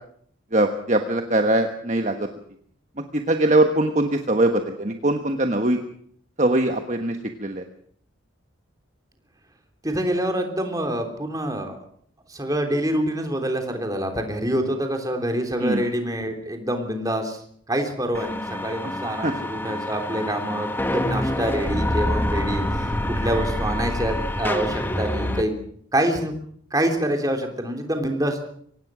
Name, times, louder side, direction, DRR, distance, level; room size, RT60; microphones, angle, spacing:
voice 1, 0.5-2.3 3.3-5.8 6.4-7.6 15.6-15.8 19.2-19.3, right 1 dB, 35° right, 5 dB, 1.4 m, -21 dB
voice 2, 9.8-11.8 12.3-17.4 17.7-25.5 25.9-26.3 26.7-28.4, right 1 dB, 20° right, 4 dB, 3.3 m, -26 dB
sound 1, 18.1-25.4, left 1 dB, 10° left, 1.5 m, -26 dB
24.5 x 18.5 x 6.3 m, 0.62 s
head